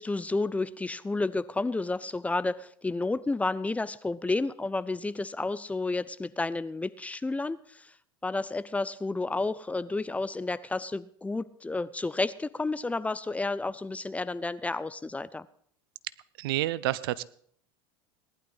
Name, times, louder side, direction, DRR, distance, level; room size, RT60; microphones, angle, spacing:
voice 1, 0.0-7.9 8.2-15.5, left 3 dB, 10° left, 17 dB, 0.5 m, -31 dB
voice 2, 16.4-17.2, right 16 dB, 70° right, 19 dB, 0.6 m, -29 dB
18.5 x 11.5 x 4.0 m, 0.62 s
hypercardioid pair, 90°, 13 cm